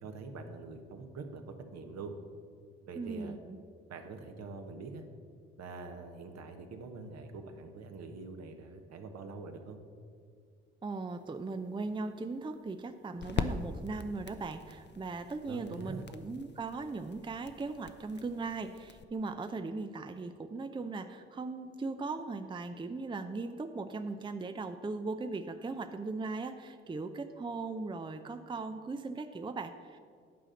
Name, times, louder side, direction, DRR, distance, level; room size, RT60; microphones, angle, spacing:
voice 1, 0.0-2.1 2.9-3.3 3.9-5.0 5.6-9.8 15.5-16.1, right 3 dB, 60° right, 5 dB, 1.2 m, -44 dB
voice 2, 2.9-3.6 10.8-30.0, right 3 dB, 15° right, 8 dB, 0.5 m, -38 dB
sound 1, 11.1-19.0, left 5 dB, 35° left, 0.7 m, -42 dB
9.3 x 5.0 x 7.6 m, 2.2 s
hypercardioid pair, 45°, 30 cm